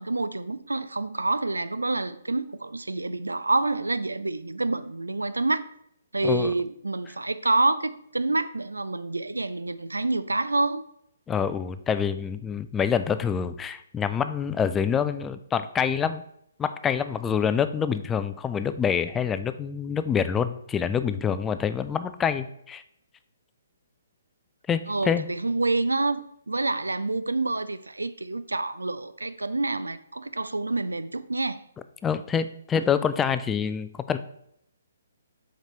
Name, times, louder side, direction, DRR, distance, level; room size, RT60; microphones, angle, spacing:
voice 1, 0.0-5.6 6.1-10.8 24.9-31.6, right 2 dB, 85° right, 0.4 m, -27 dB
voice 2, 6.2-6.5 11.3-16.2 16.6-22.8 24.7-25.3 32.0-34.2, left 7 dB, 15° left, 0.3 m, -26 dB
6.4 x 5.0 x 3.2 m
figure-of-eight pair, 130°, 0 cm